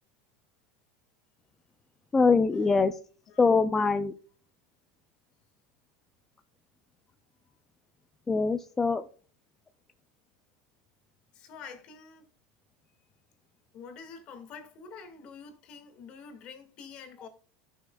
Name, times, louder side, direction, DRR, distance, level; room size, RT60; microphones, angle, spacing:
voice 1, 2.1-3.0 3.4-4.1 8.3-9.1, left 4 dB, 15° left, 0.4 m, -23 dB
voice 2, 11.3-12.3 13.7-17.3, left 5 dB, 45° left, 1.9 m, -47 dB
12.5 x 6.3 x 2.3 m
supercardioid pair, 135°, 2 cm